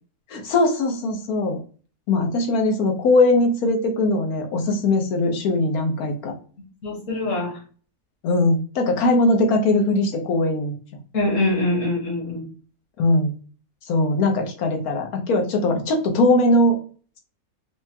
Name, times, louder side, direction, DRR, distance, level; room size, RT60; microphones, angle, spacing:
voice 1, 0.3-1.6 2.1-6.3 8.2-10.7 13.0-13.3 13.9-16.8, left 2 dB, 90° left, 3 dB, 1.3 m, -20 dB
voice 2, 6.8-7.6 11.1-12.4, left 2 dB, 65° left, -3 dB, 1.7 m, -23 dB
4.8 x 2.2 x 2.7 m, 0.40 s
omnidirectional pair, 1.5 m